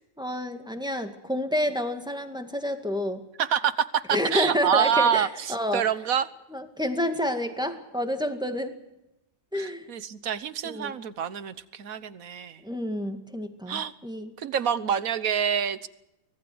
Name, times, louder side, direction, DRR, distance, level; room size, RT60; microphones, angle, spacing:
voice 1, 0.2-3.2 4.1-5.8 6.5-8.7 9.5-9.9 10.6-11.0 12.6-14.3, left 1 dB, 5° right, 6 dB, 2.0 m, -29 dB
voice 2, 3.4-6.3 9.5-12.6 13.7-13.9 14.4-15.9, right 8 dB, 90° right, 14 dB, 1.5 m, -27 dB
24.5 x 18.5 x 8.0 m, 0.90 s
omnidirectional pair, 1.4 m